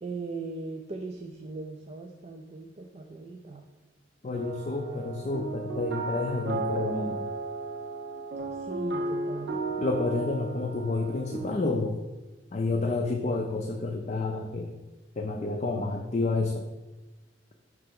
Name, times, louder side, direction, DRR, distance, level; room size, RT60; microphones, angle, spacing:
voice 1, 0.0-3.6 8.7-9.6, right 3 dB, 35° right, 3 dB, 0.4 m, -39 dB
voice 2, 4.2-7.3 9.8-12.0 12.5-14.7 15.2-16.7, left 3 dB, 40° left, 3 dB, 0.4 m, -29 dB
sound 1, 4.3-11.5, right 2 dB, 65° right, 1.1 m, -34 dB
5.6 x 3.3 x 5.2 m, 1.1 s
head